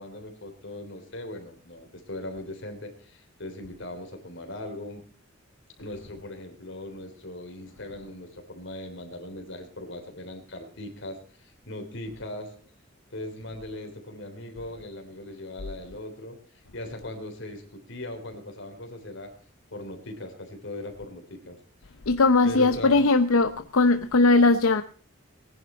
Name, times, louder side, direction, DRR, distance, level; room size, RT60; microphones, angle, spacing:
voice 1, 0.0-5.0 5.8-12.5 13.1-19.3 19.7-21.9 22.4-22.9, left 1 dB, 60° left, 3.3 m, -39 dB
voice 2, 22.1-24.8, left 3 dB, 85° left, 0.8 m, -19 dB
19.5 x 10.5 x 4.4 m
head